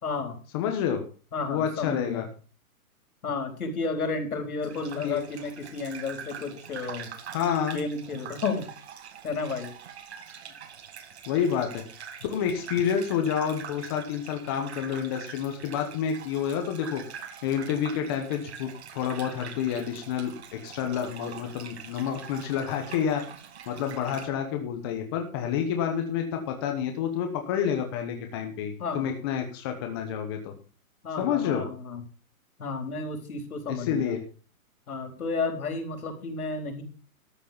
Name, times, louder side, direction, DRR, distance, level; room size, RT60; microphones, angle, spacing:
voice 1, 0.0-0.4 1.3-2.2 3.2-7.1 7.7-8.7 9.2-9.7 28.8-29.1 31.0-32.0 32.6-34.1 34.9-36.8, left 4 dB, 75° left, 5 dB, 4.3 m, -32 dB
voice 2, 0.5-1.0 1.4-2.2 5.0-5.2 7.3-7.8 11.3-11.8 12.3-23.2 23.7-30.5 31.2-31.7 33.7-34.2, left 8 dB, 15° left, 4 dB, 1.0 m, -29 dB
Gurgling / Bathtub (filling or washing), 4.6-24.3, right 7 dB, 45° right, 1.7 m, -44 dB
13.0 x 6.6 x 6.9 m, 0.38 s
hypercardioid pair, 170°, 44 cm